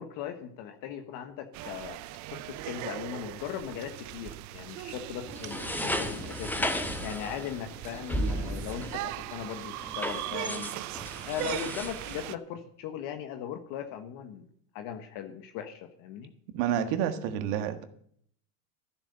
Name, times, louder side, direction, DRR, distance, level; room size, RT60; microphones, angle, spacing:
voice 1, 0.0-2.0 2.3-6.7 7.0-10.7 11.2-14.5 14.7-16.3, left 9 dB, 50° left, 7 dB, 1.4 m, -39 dB
sound 1, 1.5-12.4, right 16 dB, 45° right, 0.7 m, -39 dB
sound 2, 5.3-12.2, equal, 5° left, 1.1 m, -35 dB
voice 2, 16.5-17.8, right 9 dB, 60° right, 8 dB, 1.7 m, -29 dB
14.0 x 7.8 x 6.8 m, 0.64 s
supercardioid pair, 120°, 41 cm